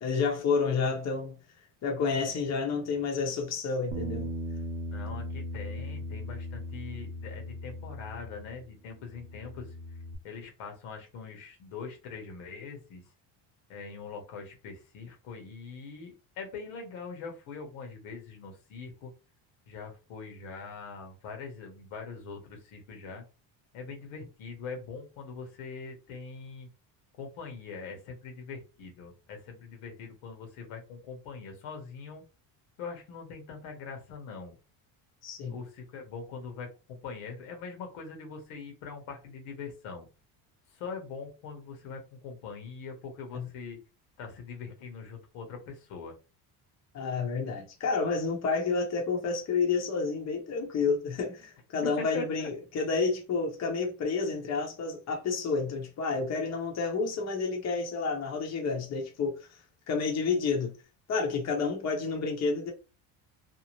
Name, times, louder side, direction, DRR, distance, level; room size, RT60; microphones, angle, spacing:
voice 1, 0.0-1.4 1.8-4.3 35.2-35.6 43.3-43.5 46.9-59.6 59.9-60.7 61.1-62.7, left 4 dB, 35° left, 0.8 m, -30 dB
Bass guitar, 3.9-8.7 9.0-10.2, left 1 dB, 80° right, 0.7 m, -38 dB
voice 2, 4.9-9.8 10.2-13.1 13.7-19.1 19.7-23.2 23.7-26.7 27.2-32.3 32.8-34.5 35.5-40.1 40.7-43.8 44.2-46.1 51.8-52.5, left 5 dB, 75° left, 1.2 m, -42 dB
2.7 x 2.0 x 3.0 m
cardioid pair, 115°, 48 cm